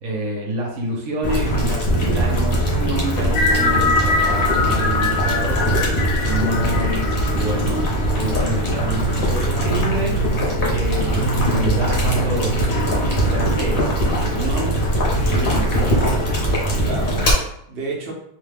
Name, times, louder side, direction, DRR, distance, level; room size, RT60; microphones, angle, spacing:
voice 1, 0.0-5.9 6.2-7.9 8.1-16.3, right 1 dB, 60° right, -1 dB, 0.9 m, -28 dB
Boiling, 1.2-17.3, equal, 45° left, 0.8 m, -21 dB
sound 1, 1.9-14.4, right 2 dB, 70° left, 0.9 m, -27 dB
sound 2, 3.4-8.1, left 4 dB, 90° left, 1.3 m, -23 dB
voice 2, 8.4-8.9 16.8-18.1, right 2 dB, 75° right, -2 dB, 0.5 m, -31 dB
2.8 x 2.2 x 3.4 m, 0.71 s
omnidirectional pair, 1.9 m